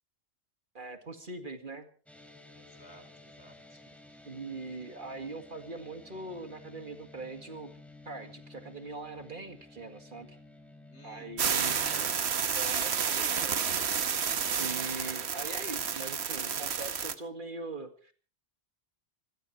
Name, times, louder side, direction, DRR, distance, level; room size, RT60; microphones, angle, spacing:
voice 1, 0.7-1.9 4.3-7.7 8.1-10.4 11.0-12.1 12.5-13.9 14.6-18.1, right 3 dB, 45° right, 7 dB, 2.1 m, -42 dB
sound 1, 2.1-12.1, left 2 dB, ahead, 3.7 m, -53 dB
voice 2, 2.5-3.8 4.1-4.2 10.9-11.9, left 1 dB, 75° left, 8 dB, 4.3 m, -57 dB
sound 2, 11.4-17.1, right 7 dB, 70° right, 1.3 m, -30 dB
25.5 x 17.0 x 3.2 m, 0.39 s
omnidirectional pair, 1.1 m